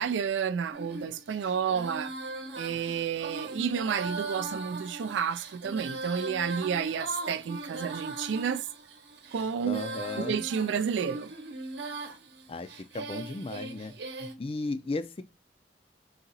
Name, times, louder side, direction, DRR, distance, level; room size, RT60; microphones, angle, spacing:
voice 1, 0.0-2.1 2.6-8.7 9.3-9.8 10.2-11.3, right 7 dB, 80° right, 0.3 m, -30 dB
Female singing, 0.7-14.3, right 2 dB, 65° right, 0.9 m, -39 dB
voice 2, 9.7-10.4 12.5-12.7 12.9-13.9 14.2-15.2, left 3 dB, 30° left, 0.4 m, -35 dB
3.9 x 2.8 x 4.0 m
head